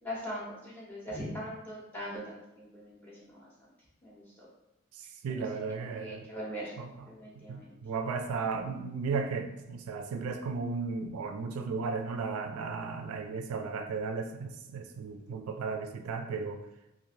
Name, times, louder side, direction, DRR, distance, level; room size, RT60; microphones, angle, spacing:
voice 1, 0.0-3.5 4.0-4.5 5.3-6.7 7.1-7.7, equal, 10° left, -6 dB, 1.0 m, -41 dB
voice 2, 5.2-6.3 6.8-6.9 7.5-16.6, right 4 dB, 80° right, 6 dB, 0.3 m, -35 dB
3.1 x 2.4 x 2.6 m, 0.90 s
head